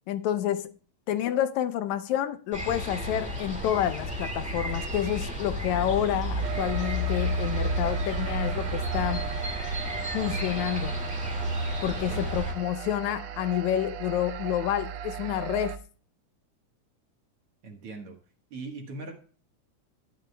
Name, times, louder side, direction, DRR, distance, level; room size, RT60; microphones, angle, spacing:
voice 1, 0.1-0.7 1.1-9.3 10.1-11.0 11.8-15.7, left 11 dB, 80° left, 1.9 m, -29 dB
sound 1, 2.5-12.5, equal, 5° right, 1.2 m, -31 dB
sound 2, 6.4-15.8, right 9 dB, 85° right, 2.3 m, -37 dB
voice 2, 11.9-12.3 17.6-18.2 18.5-19.1, right 3 dB, 55° right, 2.1 m, -40 dB
12.5 x 10.0 x 2.2 m
omnidirectional pair, 3.5 m